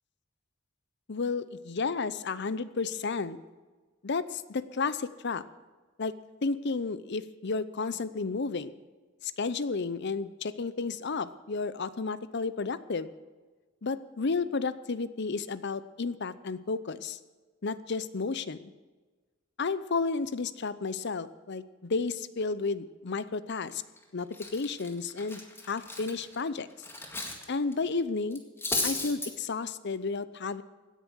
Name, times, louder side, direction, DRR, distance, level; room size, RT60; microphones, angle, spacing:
voice 1, 1.1-3.4 4.0-5.4 6.0-6.1 6.4-8.7 9.2-13.1 13.8-17.2 17.6-18.7 19.6-23.8 24.1-24.3 24.5-26.7 27.5-28.4 28.8-30.6, left 4 dB, 60° left, 15 dB, 0.7 m, -32 dB
Cutlery silverware, 23.7-24.0 24.3-27.4 27.7-27.9 28.3-29.3, left 2 dB, 10° left, 1.9 m, -34 dB
16.5 x 10.0 x 6.3 m, 1.3 s
head